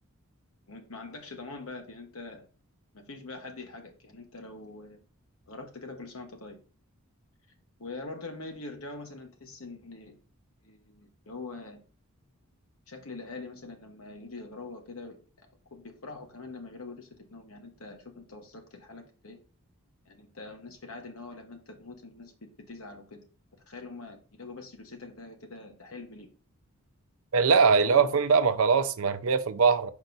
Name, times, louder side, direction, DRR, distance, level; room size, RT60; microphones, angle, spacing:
voice 1, 0.7-2.5 2.9-5.0 5.5-6.6 7.8-10.1 10.6-11.8 12.9-15.2 15.7-19.4 20.0-22.3 22.7-23.2 23.7-26.3 27.8-28.2, left 3 dB, 70° left, 1.2 m, -43 dB
voice 2, 27.3-29.9, right 5 dB, 70° right, 0.5 m, -22 dB
5.2 x 4.5 x 4.0 m
head